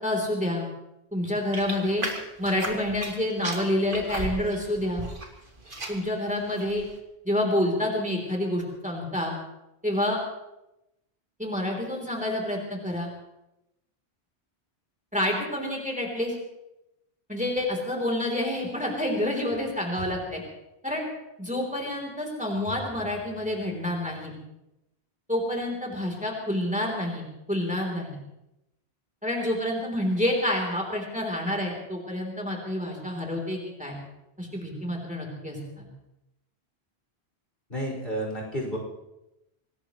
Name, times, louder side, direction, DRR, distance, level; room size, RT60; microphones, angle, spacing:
voice 1, 0.0-0.7 1.1-2.0 2.4-5.1 5.9-6.9 7.2-9.3 9.8-10.2 11.4-13.1 15.1-16.3 17.3-20.4 20.8-21.0 21.4-24.3 25.3-27.2 27.5-28.2 29.2-33.9 34.4-35.8, left 1 dB, 5° right, 0 dB, 3.3 m, -28 dB
sound 1, 1.5-3.2 3.4-5.3 5.6-6.1 6.5-6.8, right 2 dB, 55° right, 2.4 m, -35 dB
voice 2, 37.7-38.8, equal, 60° left, -2 dB, 5.3 m, -31 dB
25.0 x 18.5 x 3.1 m, 0.90 s
omnidirectional pair, 1.1 m